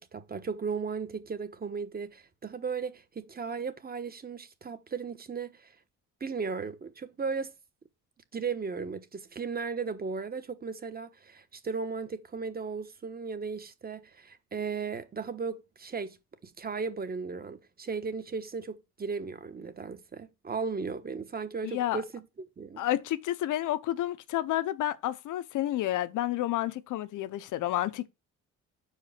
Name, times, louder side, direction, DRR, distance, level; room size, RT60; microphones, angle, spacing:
voice 1, 0.0-5.7 6.2-7.5 8.3-16.2 16.4-22.8, right 5 dB, 30° right, 1.1 m, -36 dB
voice 2, 21.6-22.0 22.8-28.1, left 13 dB, 80° left, 0.8 m, -30 dB
5.7 x 4.7 x 5.7 m
cardioid pair, 90°, 30 cm